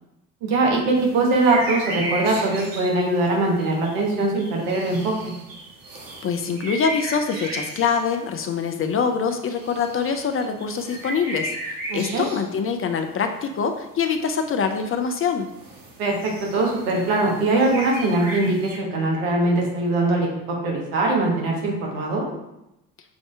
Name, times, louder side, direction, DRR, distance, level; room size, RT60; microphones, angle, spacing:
voice 1, 0.4-5.3 11.9-12.2 16.0-20.3 20.6-22.3, right 2 dB, 75° right, -1 dB, 1.3 m, -22 dB
sound 1, 0.9-12.6 13.0-13.1 13.8-13.9 14.1-14.2 14.5-15.2 15.4-18.8, right 1 dB, 50° right, 1.2 m, -35 dB
voice 2, 6.2-15.5, left 6 dB, 30° left, 6 dB, 0.5 m, -24 dB
5.8 x 2.7 x 3.3 m, 0.88 s
hypercardioid pair, 65°, 43 cm